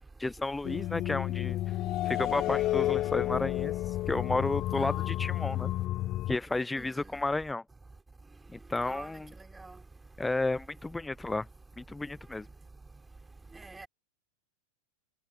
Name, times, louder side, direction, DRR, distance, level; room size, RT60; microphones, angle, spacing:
voice 1, 0.2-1.6 2.0-5.7 6.3-7.6 8.5-9.3 10.2-11.5 11.8-12.5, left 2 dB, 5° left, 0.6 m, -32 dB
sound 1, 0.6-6.4, left 15 dB, 35° left, 2.4 m, -31 dB
voice 2, 6.8-7.1 8.8-9.1 9.4-9.7 13.5-13.9, right 3 dB, 10° right, 4.6 m, -46 dB
figure-of-eight pair, 90°, 0 cm